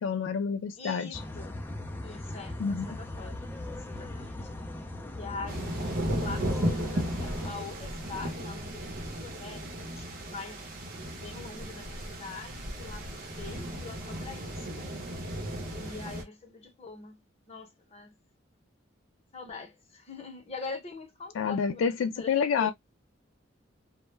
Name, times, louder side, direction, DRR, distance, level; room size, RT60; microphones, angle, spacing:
voice 1, 0.0-1.2 2.6-2.9 21.4-22.7, left 6 dB, 85° left, 0.3 m, -28 dB
voice 2, 0.8-1.5 2.0-3.3 3.9-4.5 5.1-9.7 10.0-14.9 15.7-17.2 17.5-18.2 19.3-21.8 22.2-22.7, left 4 dB, 35° left, 0.8 m, -43 dB
sound 1, 1.1-7.5, left 1 dB, 10° left, 0.4 m, -39 dB
sound 2, 5.5-16.2, equal, 50° right, 0.8 m, -35 dB
2.2 x 2.1 x 3.0 m
head